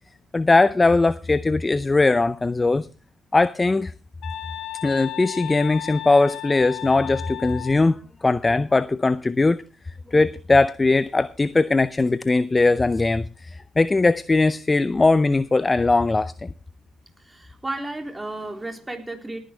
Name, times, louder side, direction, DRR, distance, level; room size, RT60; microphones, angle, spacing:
voice 1, 0.3-2.9 3.3-3.9 4.8-8.0 8.2-9.6 10.1-16.5, left 3 dB, 25° left, 0.6 m, -20 dB
sound 1, 4.2-7.9, left 14 dB, 70° left, 1.9 m, -34 dB
voice 2, 17.2-19.4, right 2 dB, 15° right, 3.6 m, -33 dB
19.0 x 10.5 x 3.3 m
supercardioid pair, 65°, 0 cm